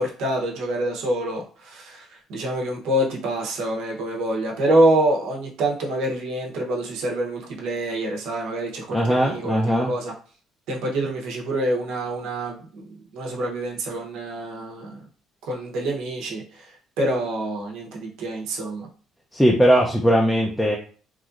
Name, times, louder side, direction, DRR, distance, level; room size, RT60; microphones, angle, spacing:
voice 1, 0.0-10.1 10.7-12.9 13.1-15.0 15.5-16.6 17.0-18.9, right 1 dB, 80° right, -1 dB, 0.9 m, -26 dB
voice 2, 8.9-9.9 19.3-20.8, equal, 5° left, -2 dB, 0.5 m, -19 dB
3.1 x 2.6 x 2.5 m, 0.41 s
cardioid pair, 100°, 0 cm